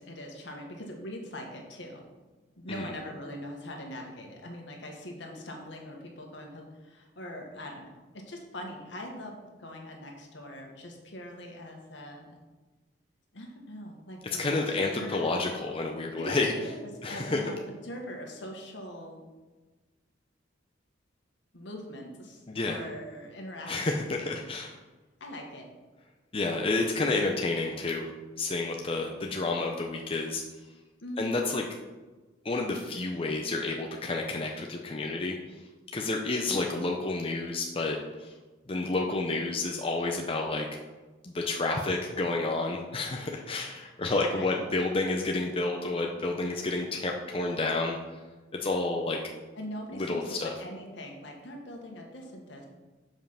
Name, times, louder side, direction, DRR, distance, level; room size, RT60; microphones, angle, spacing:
voice 1, 0.0-2.0 2.6-12.4 13.3-15.3 16.2-17.6 17.8-19.2 21.5-22.4 22.7-24.1 25.2-25.7 31.0-31.4 44.3-44.6 49.5-52.7, equal, 70° left, 1 dB, 1.7 m, -42 dB
voice 2, 14.4-16.5 17.0-17.4 22.5-22.8 23.7-24.8 26.3-28.1 28.4-30.4 31.2-31.6 32.4-35.4 35.9-38.3 38.7-40.7 41.2-48.2 48.6-49.2 49.9-50.6, left 3 dB, 30° left, 1 dB, 0.6 m, -30 dB
7.3 x 5.3 x 5.7 m, 1.2 s
head